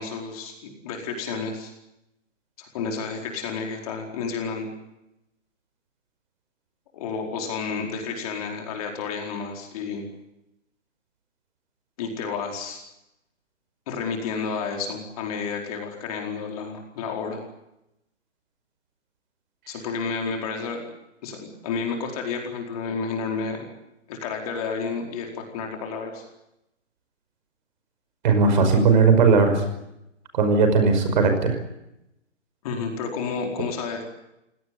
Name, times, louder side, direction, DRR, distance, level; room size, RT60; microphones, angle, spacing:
voice 1, 0.0-1.7 2.6-4.7 6.9-10.1 12.0-12.8 13.9-17.4 19.7-20.8 21.2-23.7 24.1-26.2 32.6-34.0, left 5 dB, 30° left, 2 dB, 4.6 m, -31 dB
voice 2, 28.2-29.6 30.3-31.6, right 4 dB, 40° right, 7 dB, 5.6 m, -18 dB
24.0 x 18.0 x 9.7 m, 0.87 s
hypercardioid pair, 160°, 37 cm